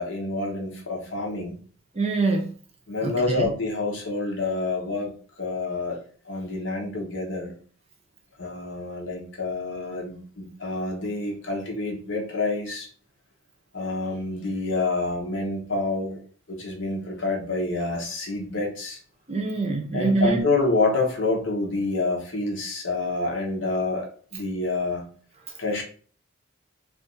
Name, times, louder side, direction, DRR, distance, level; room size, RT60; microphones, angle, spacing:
voice 1, 0.0-1.6 2.9-5.1 5.4-6.0 6.3-7.5 8.4-12.9 13.7-16.2 16.5-19.0 19.9-25.1 25.6-25.8, left 2 dB, 60° left, 0 dB, 0.9 m, -27 dB
voice 2, 2.0-2.5 3.0-3.5 19.3-20.5, right 3 dB, 30° right, 3 dB, 0.6 m, -24 dB
2.5 x 2.5 x 3.7 m, 0.44 s
head